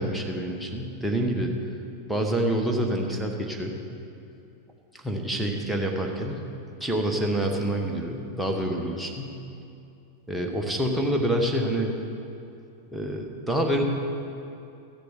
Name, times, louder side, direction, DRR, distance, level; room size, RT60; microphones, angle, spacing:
voice 1, 0.0-1.5 2.1-3.8 4.9-6.4 6.8-9.4 10.3-12.0 12.9-13.8, right 1 dB, ahead, 1 dB, 1.2 m, -27 dB
14.0 x 6.7 x 5.0 m, 2.6 s
figure-of-eight pair, 90°, 0 cm